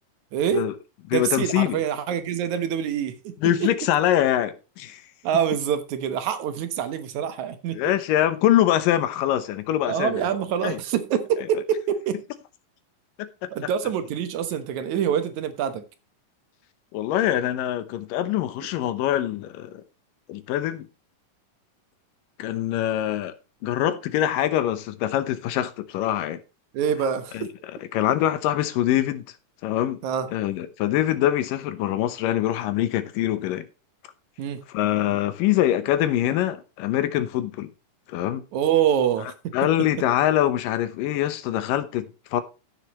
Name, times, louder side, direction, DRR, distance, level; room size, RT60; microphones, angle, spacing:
voice 1, 0.3-0.7 1.1-3.7 5.2-7.8 9.9-12.2 13.5-15.8 26.7-27.5 30.0-30.3 34.4-34.6 38.5-39.9, right 9 dB, 65° right, 2.4 m, -25 dB
voice 2, 1.1-1.8 3.4-5.0 7.7-10.2 10.6-10.8 13.2-13.5 16.9-19.8 20.3-20.9 22.4-23.3 23.6-26.4 27.3-27.5 27.9-29.2 29.6-30.0 30.3-33.7 34.7-37.7 38.1-38.4 39.2-42.4, left 12 dB, 85° left, 2.6 m, -24 dB
15.0 x 6.8 x 3.0 m
omnidirectional pair, 3.8 m